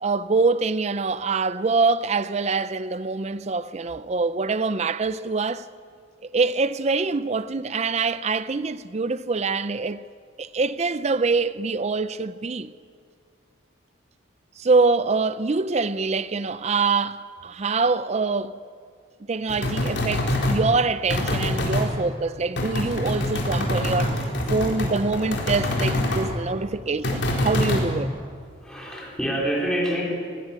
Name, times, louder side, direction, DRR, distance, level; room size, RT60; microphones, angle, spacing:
voice 1, 0.0-5.7 6.3-10.0 10.4-12.7 14.6-18.6 19.3-28.1, right 4 dB, 35° right, 0.5 m, -24 dB
sound 1, 19.5-20.6 21.1-21.9 22.6-26.3 27.0-27.9, left 1 dB, 60° left, 4.3 m, -25 dB
voice 2, 28.6-30.0, right 1 dB, 5° left, 4.1 m, -27 dB
21.0 x 19.0 x 8.7 m
head